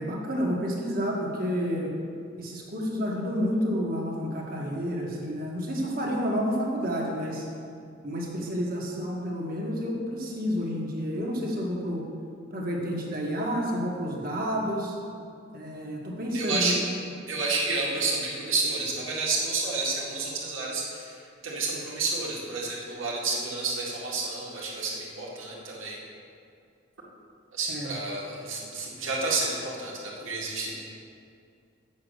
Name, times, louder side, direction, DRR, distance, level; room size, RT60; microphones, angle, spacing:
voice 1, 0.0-1.9 2.4-7.4 8.0-12.1 12.5-15.0 15.5-16.7 27.7-27.9, equal, 45° right, -2 dB, 1.6 m, -30 dB
voice 2, 16.3-16.7 17.3-26.0 27.5-30.8, right 3 dB, 90° right, -4 dB, 2.2 m, -30 dB
7.5 x 7.4 x 6.6 m, 2.4 s
head